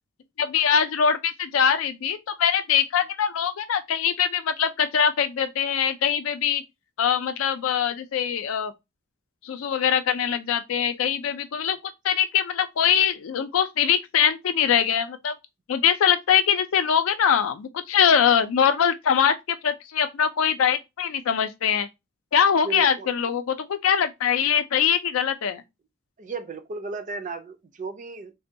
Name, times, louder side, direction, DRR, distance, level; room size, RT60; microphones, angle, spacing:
voice 1, 0.4-6.6 7.0-8.7 9.4-11.8 12.0-15.4 15.7-21.9 22.3-25.6, left 8 dB, 85° left, 0.4 m, -22 dB
voice 2, 22.6-23.1 26.2-28.3, right 3 dB, 40° right, 0.4 m, -35 dB
3.3 x 2.2 x 2.6 m
head